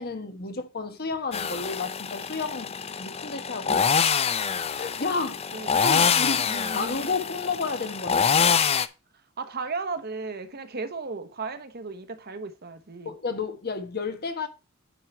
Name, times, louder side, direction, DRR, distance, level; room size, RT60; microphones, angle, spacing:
voice 1, 0.0-4.1 4.7-5.4 5.8-6.5 6.7-8.4 13.0-14.5, left 4 dB, 45° left, 1.3 m, -31 dB
sound 1, 1.3-8.9, left 6 dB, 30° left, 0.4 m, -25 dB
voice 2, 5.5-5.8 6.4-7.0 9.1-13.1, right 4 dB, 45° right, 1.0 m, -35 dB
9.3 x 4.8 x 4.3 m
head